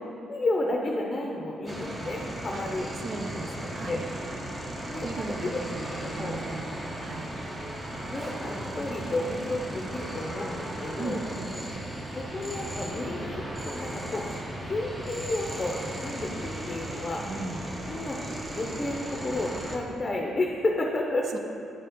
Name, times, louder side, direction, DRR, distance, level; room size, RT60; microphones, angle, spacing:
voice 1, 0.3-2.9 3.9-4.0 4.9-5.6 6.0-6.4 8.1-11.2 12.1-14.2 14.6-17.2 17.9-18.2 18.5-21.4, left 2 dB, 30° left, 0 dB, 0.6 m, -31 dB
sound 1, 1.7-19.8, right 1 dB, 20° right, 0.9 m, -36 dB
voice 2, 2.5-4.1 5.0-6.6 7.0-7.3 11.0-11.6 17.2-17.6 21.3-21.4, right 3 dB, 60° right, 5 dB, 0.6 m, -37 dB
9.3 x 4.3 x 3.7 m, 2.8 s
cardioid pair, 90°, 0 cm